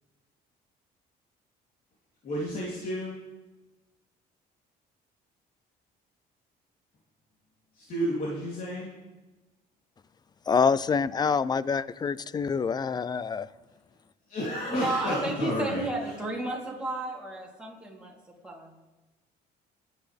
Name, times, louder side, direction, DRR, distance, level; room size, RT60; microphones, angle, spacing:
voice 1, 2.2-3.1 7.7-8.9 14.3-16.2, equal, 55° left, 3.4 m, -31 dB
voice 2, 10.5-13.5, left 5 dB, 25° left, 0.5 m, -26 dB
voice 3, 14.7-18.1 18.4-18.7, right 2 dB, 5° right, 3.5 m, -32 dB
22.5 x 9.9 x 3.5 m
cardioid pair, 110°, 17 cm